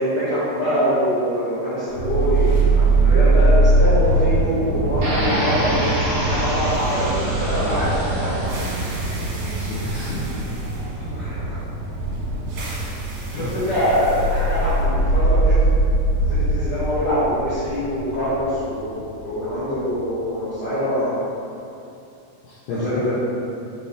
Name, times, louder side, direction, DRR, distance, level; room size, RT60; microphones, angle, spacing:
voice 1, 0.0-8.7 11.1-11.6 13.3-21.3 22.7-23.1, equal, 55° left, -14 dB, 1.9 m, -24 dB
sound 1, 1.9-20.0, right 2 dB, 65° right, 2.0 m, -21 dB
sound 2, 5.0-10.0, equal, 80° right, 1.3 m, -28 dB
voice 2, 9.4-10.3 13.3-13.5 22.4-23.0, left 3 dB, 85° left, -6 dB, 2.1 m, -31 dB
6.6 x 5.1 x 3.4 m, 2.7 s
omnidirectional pair, 4.8 m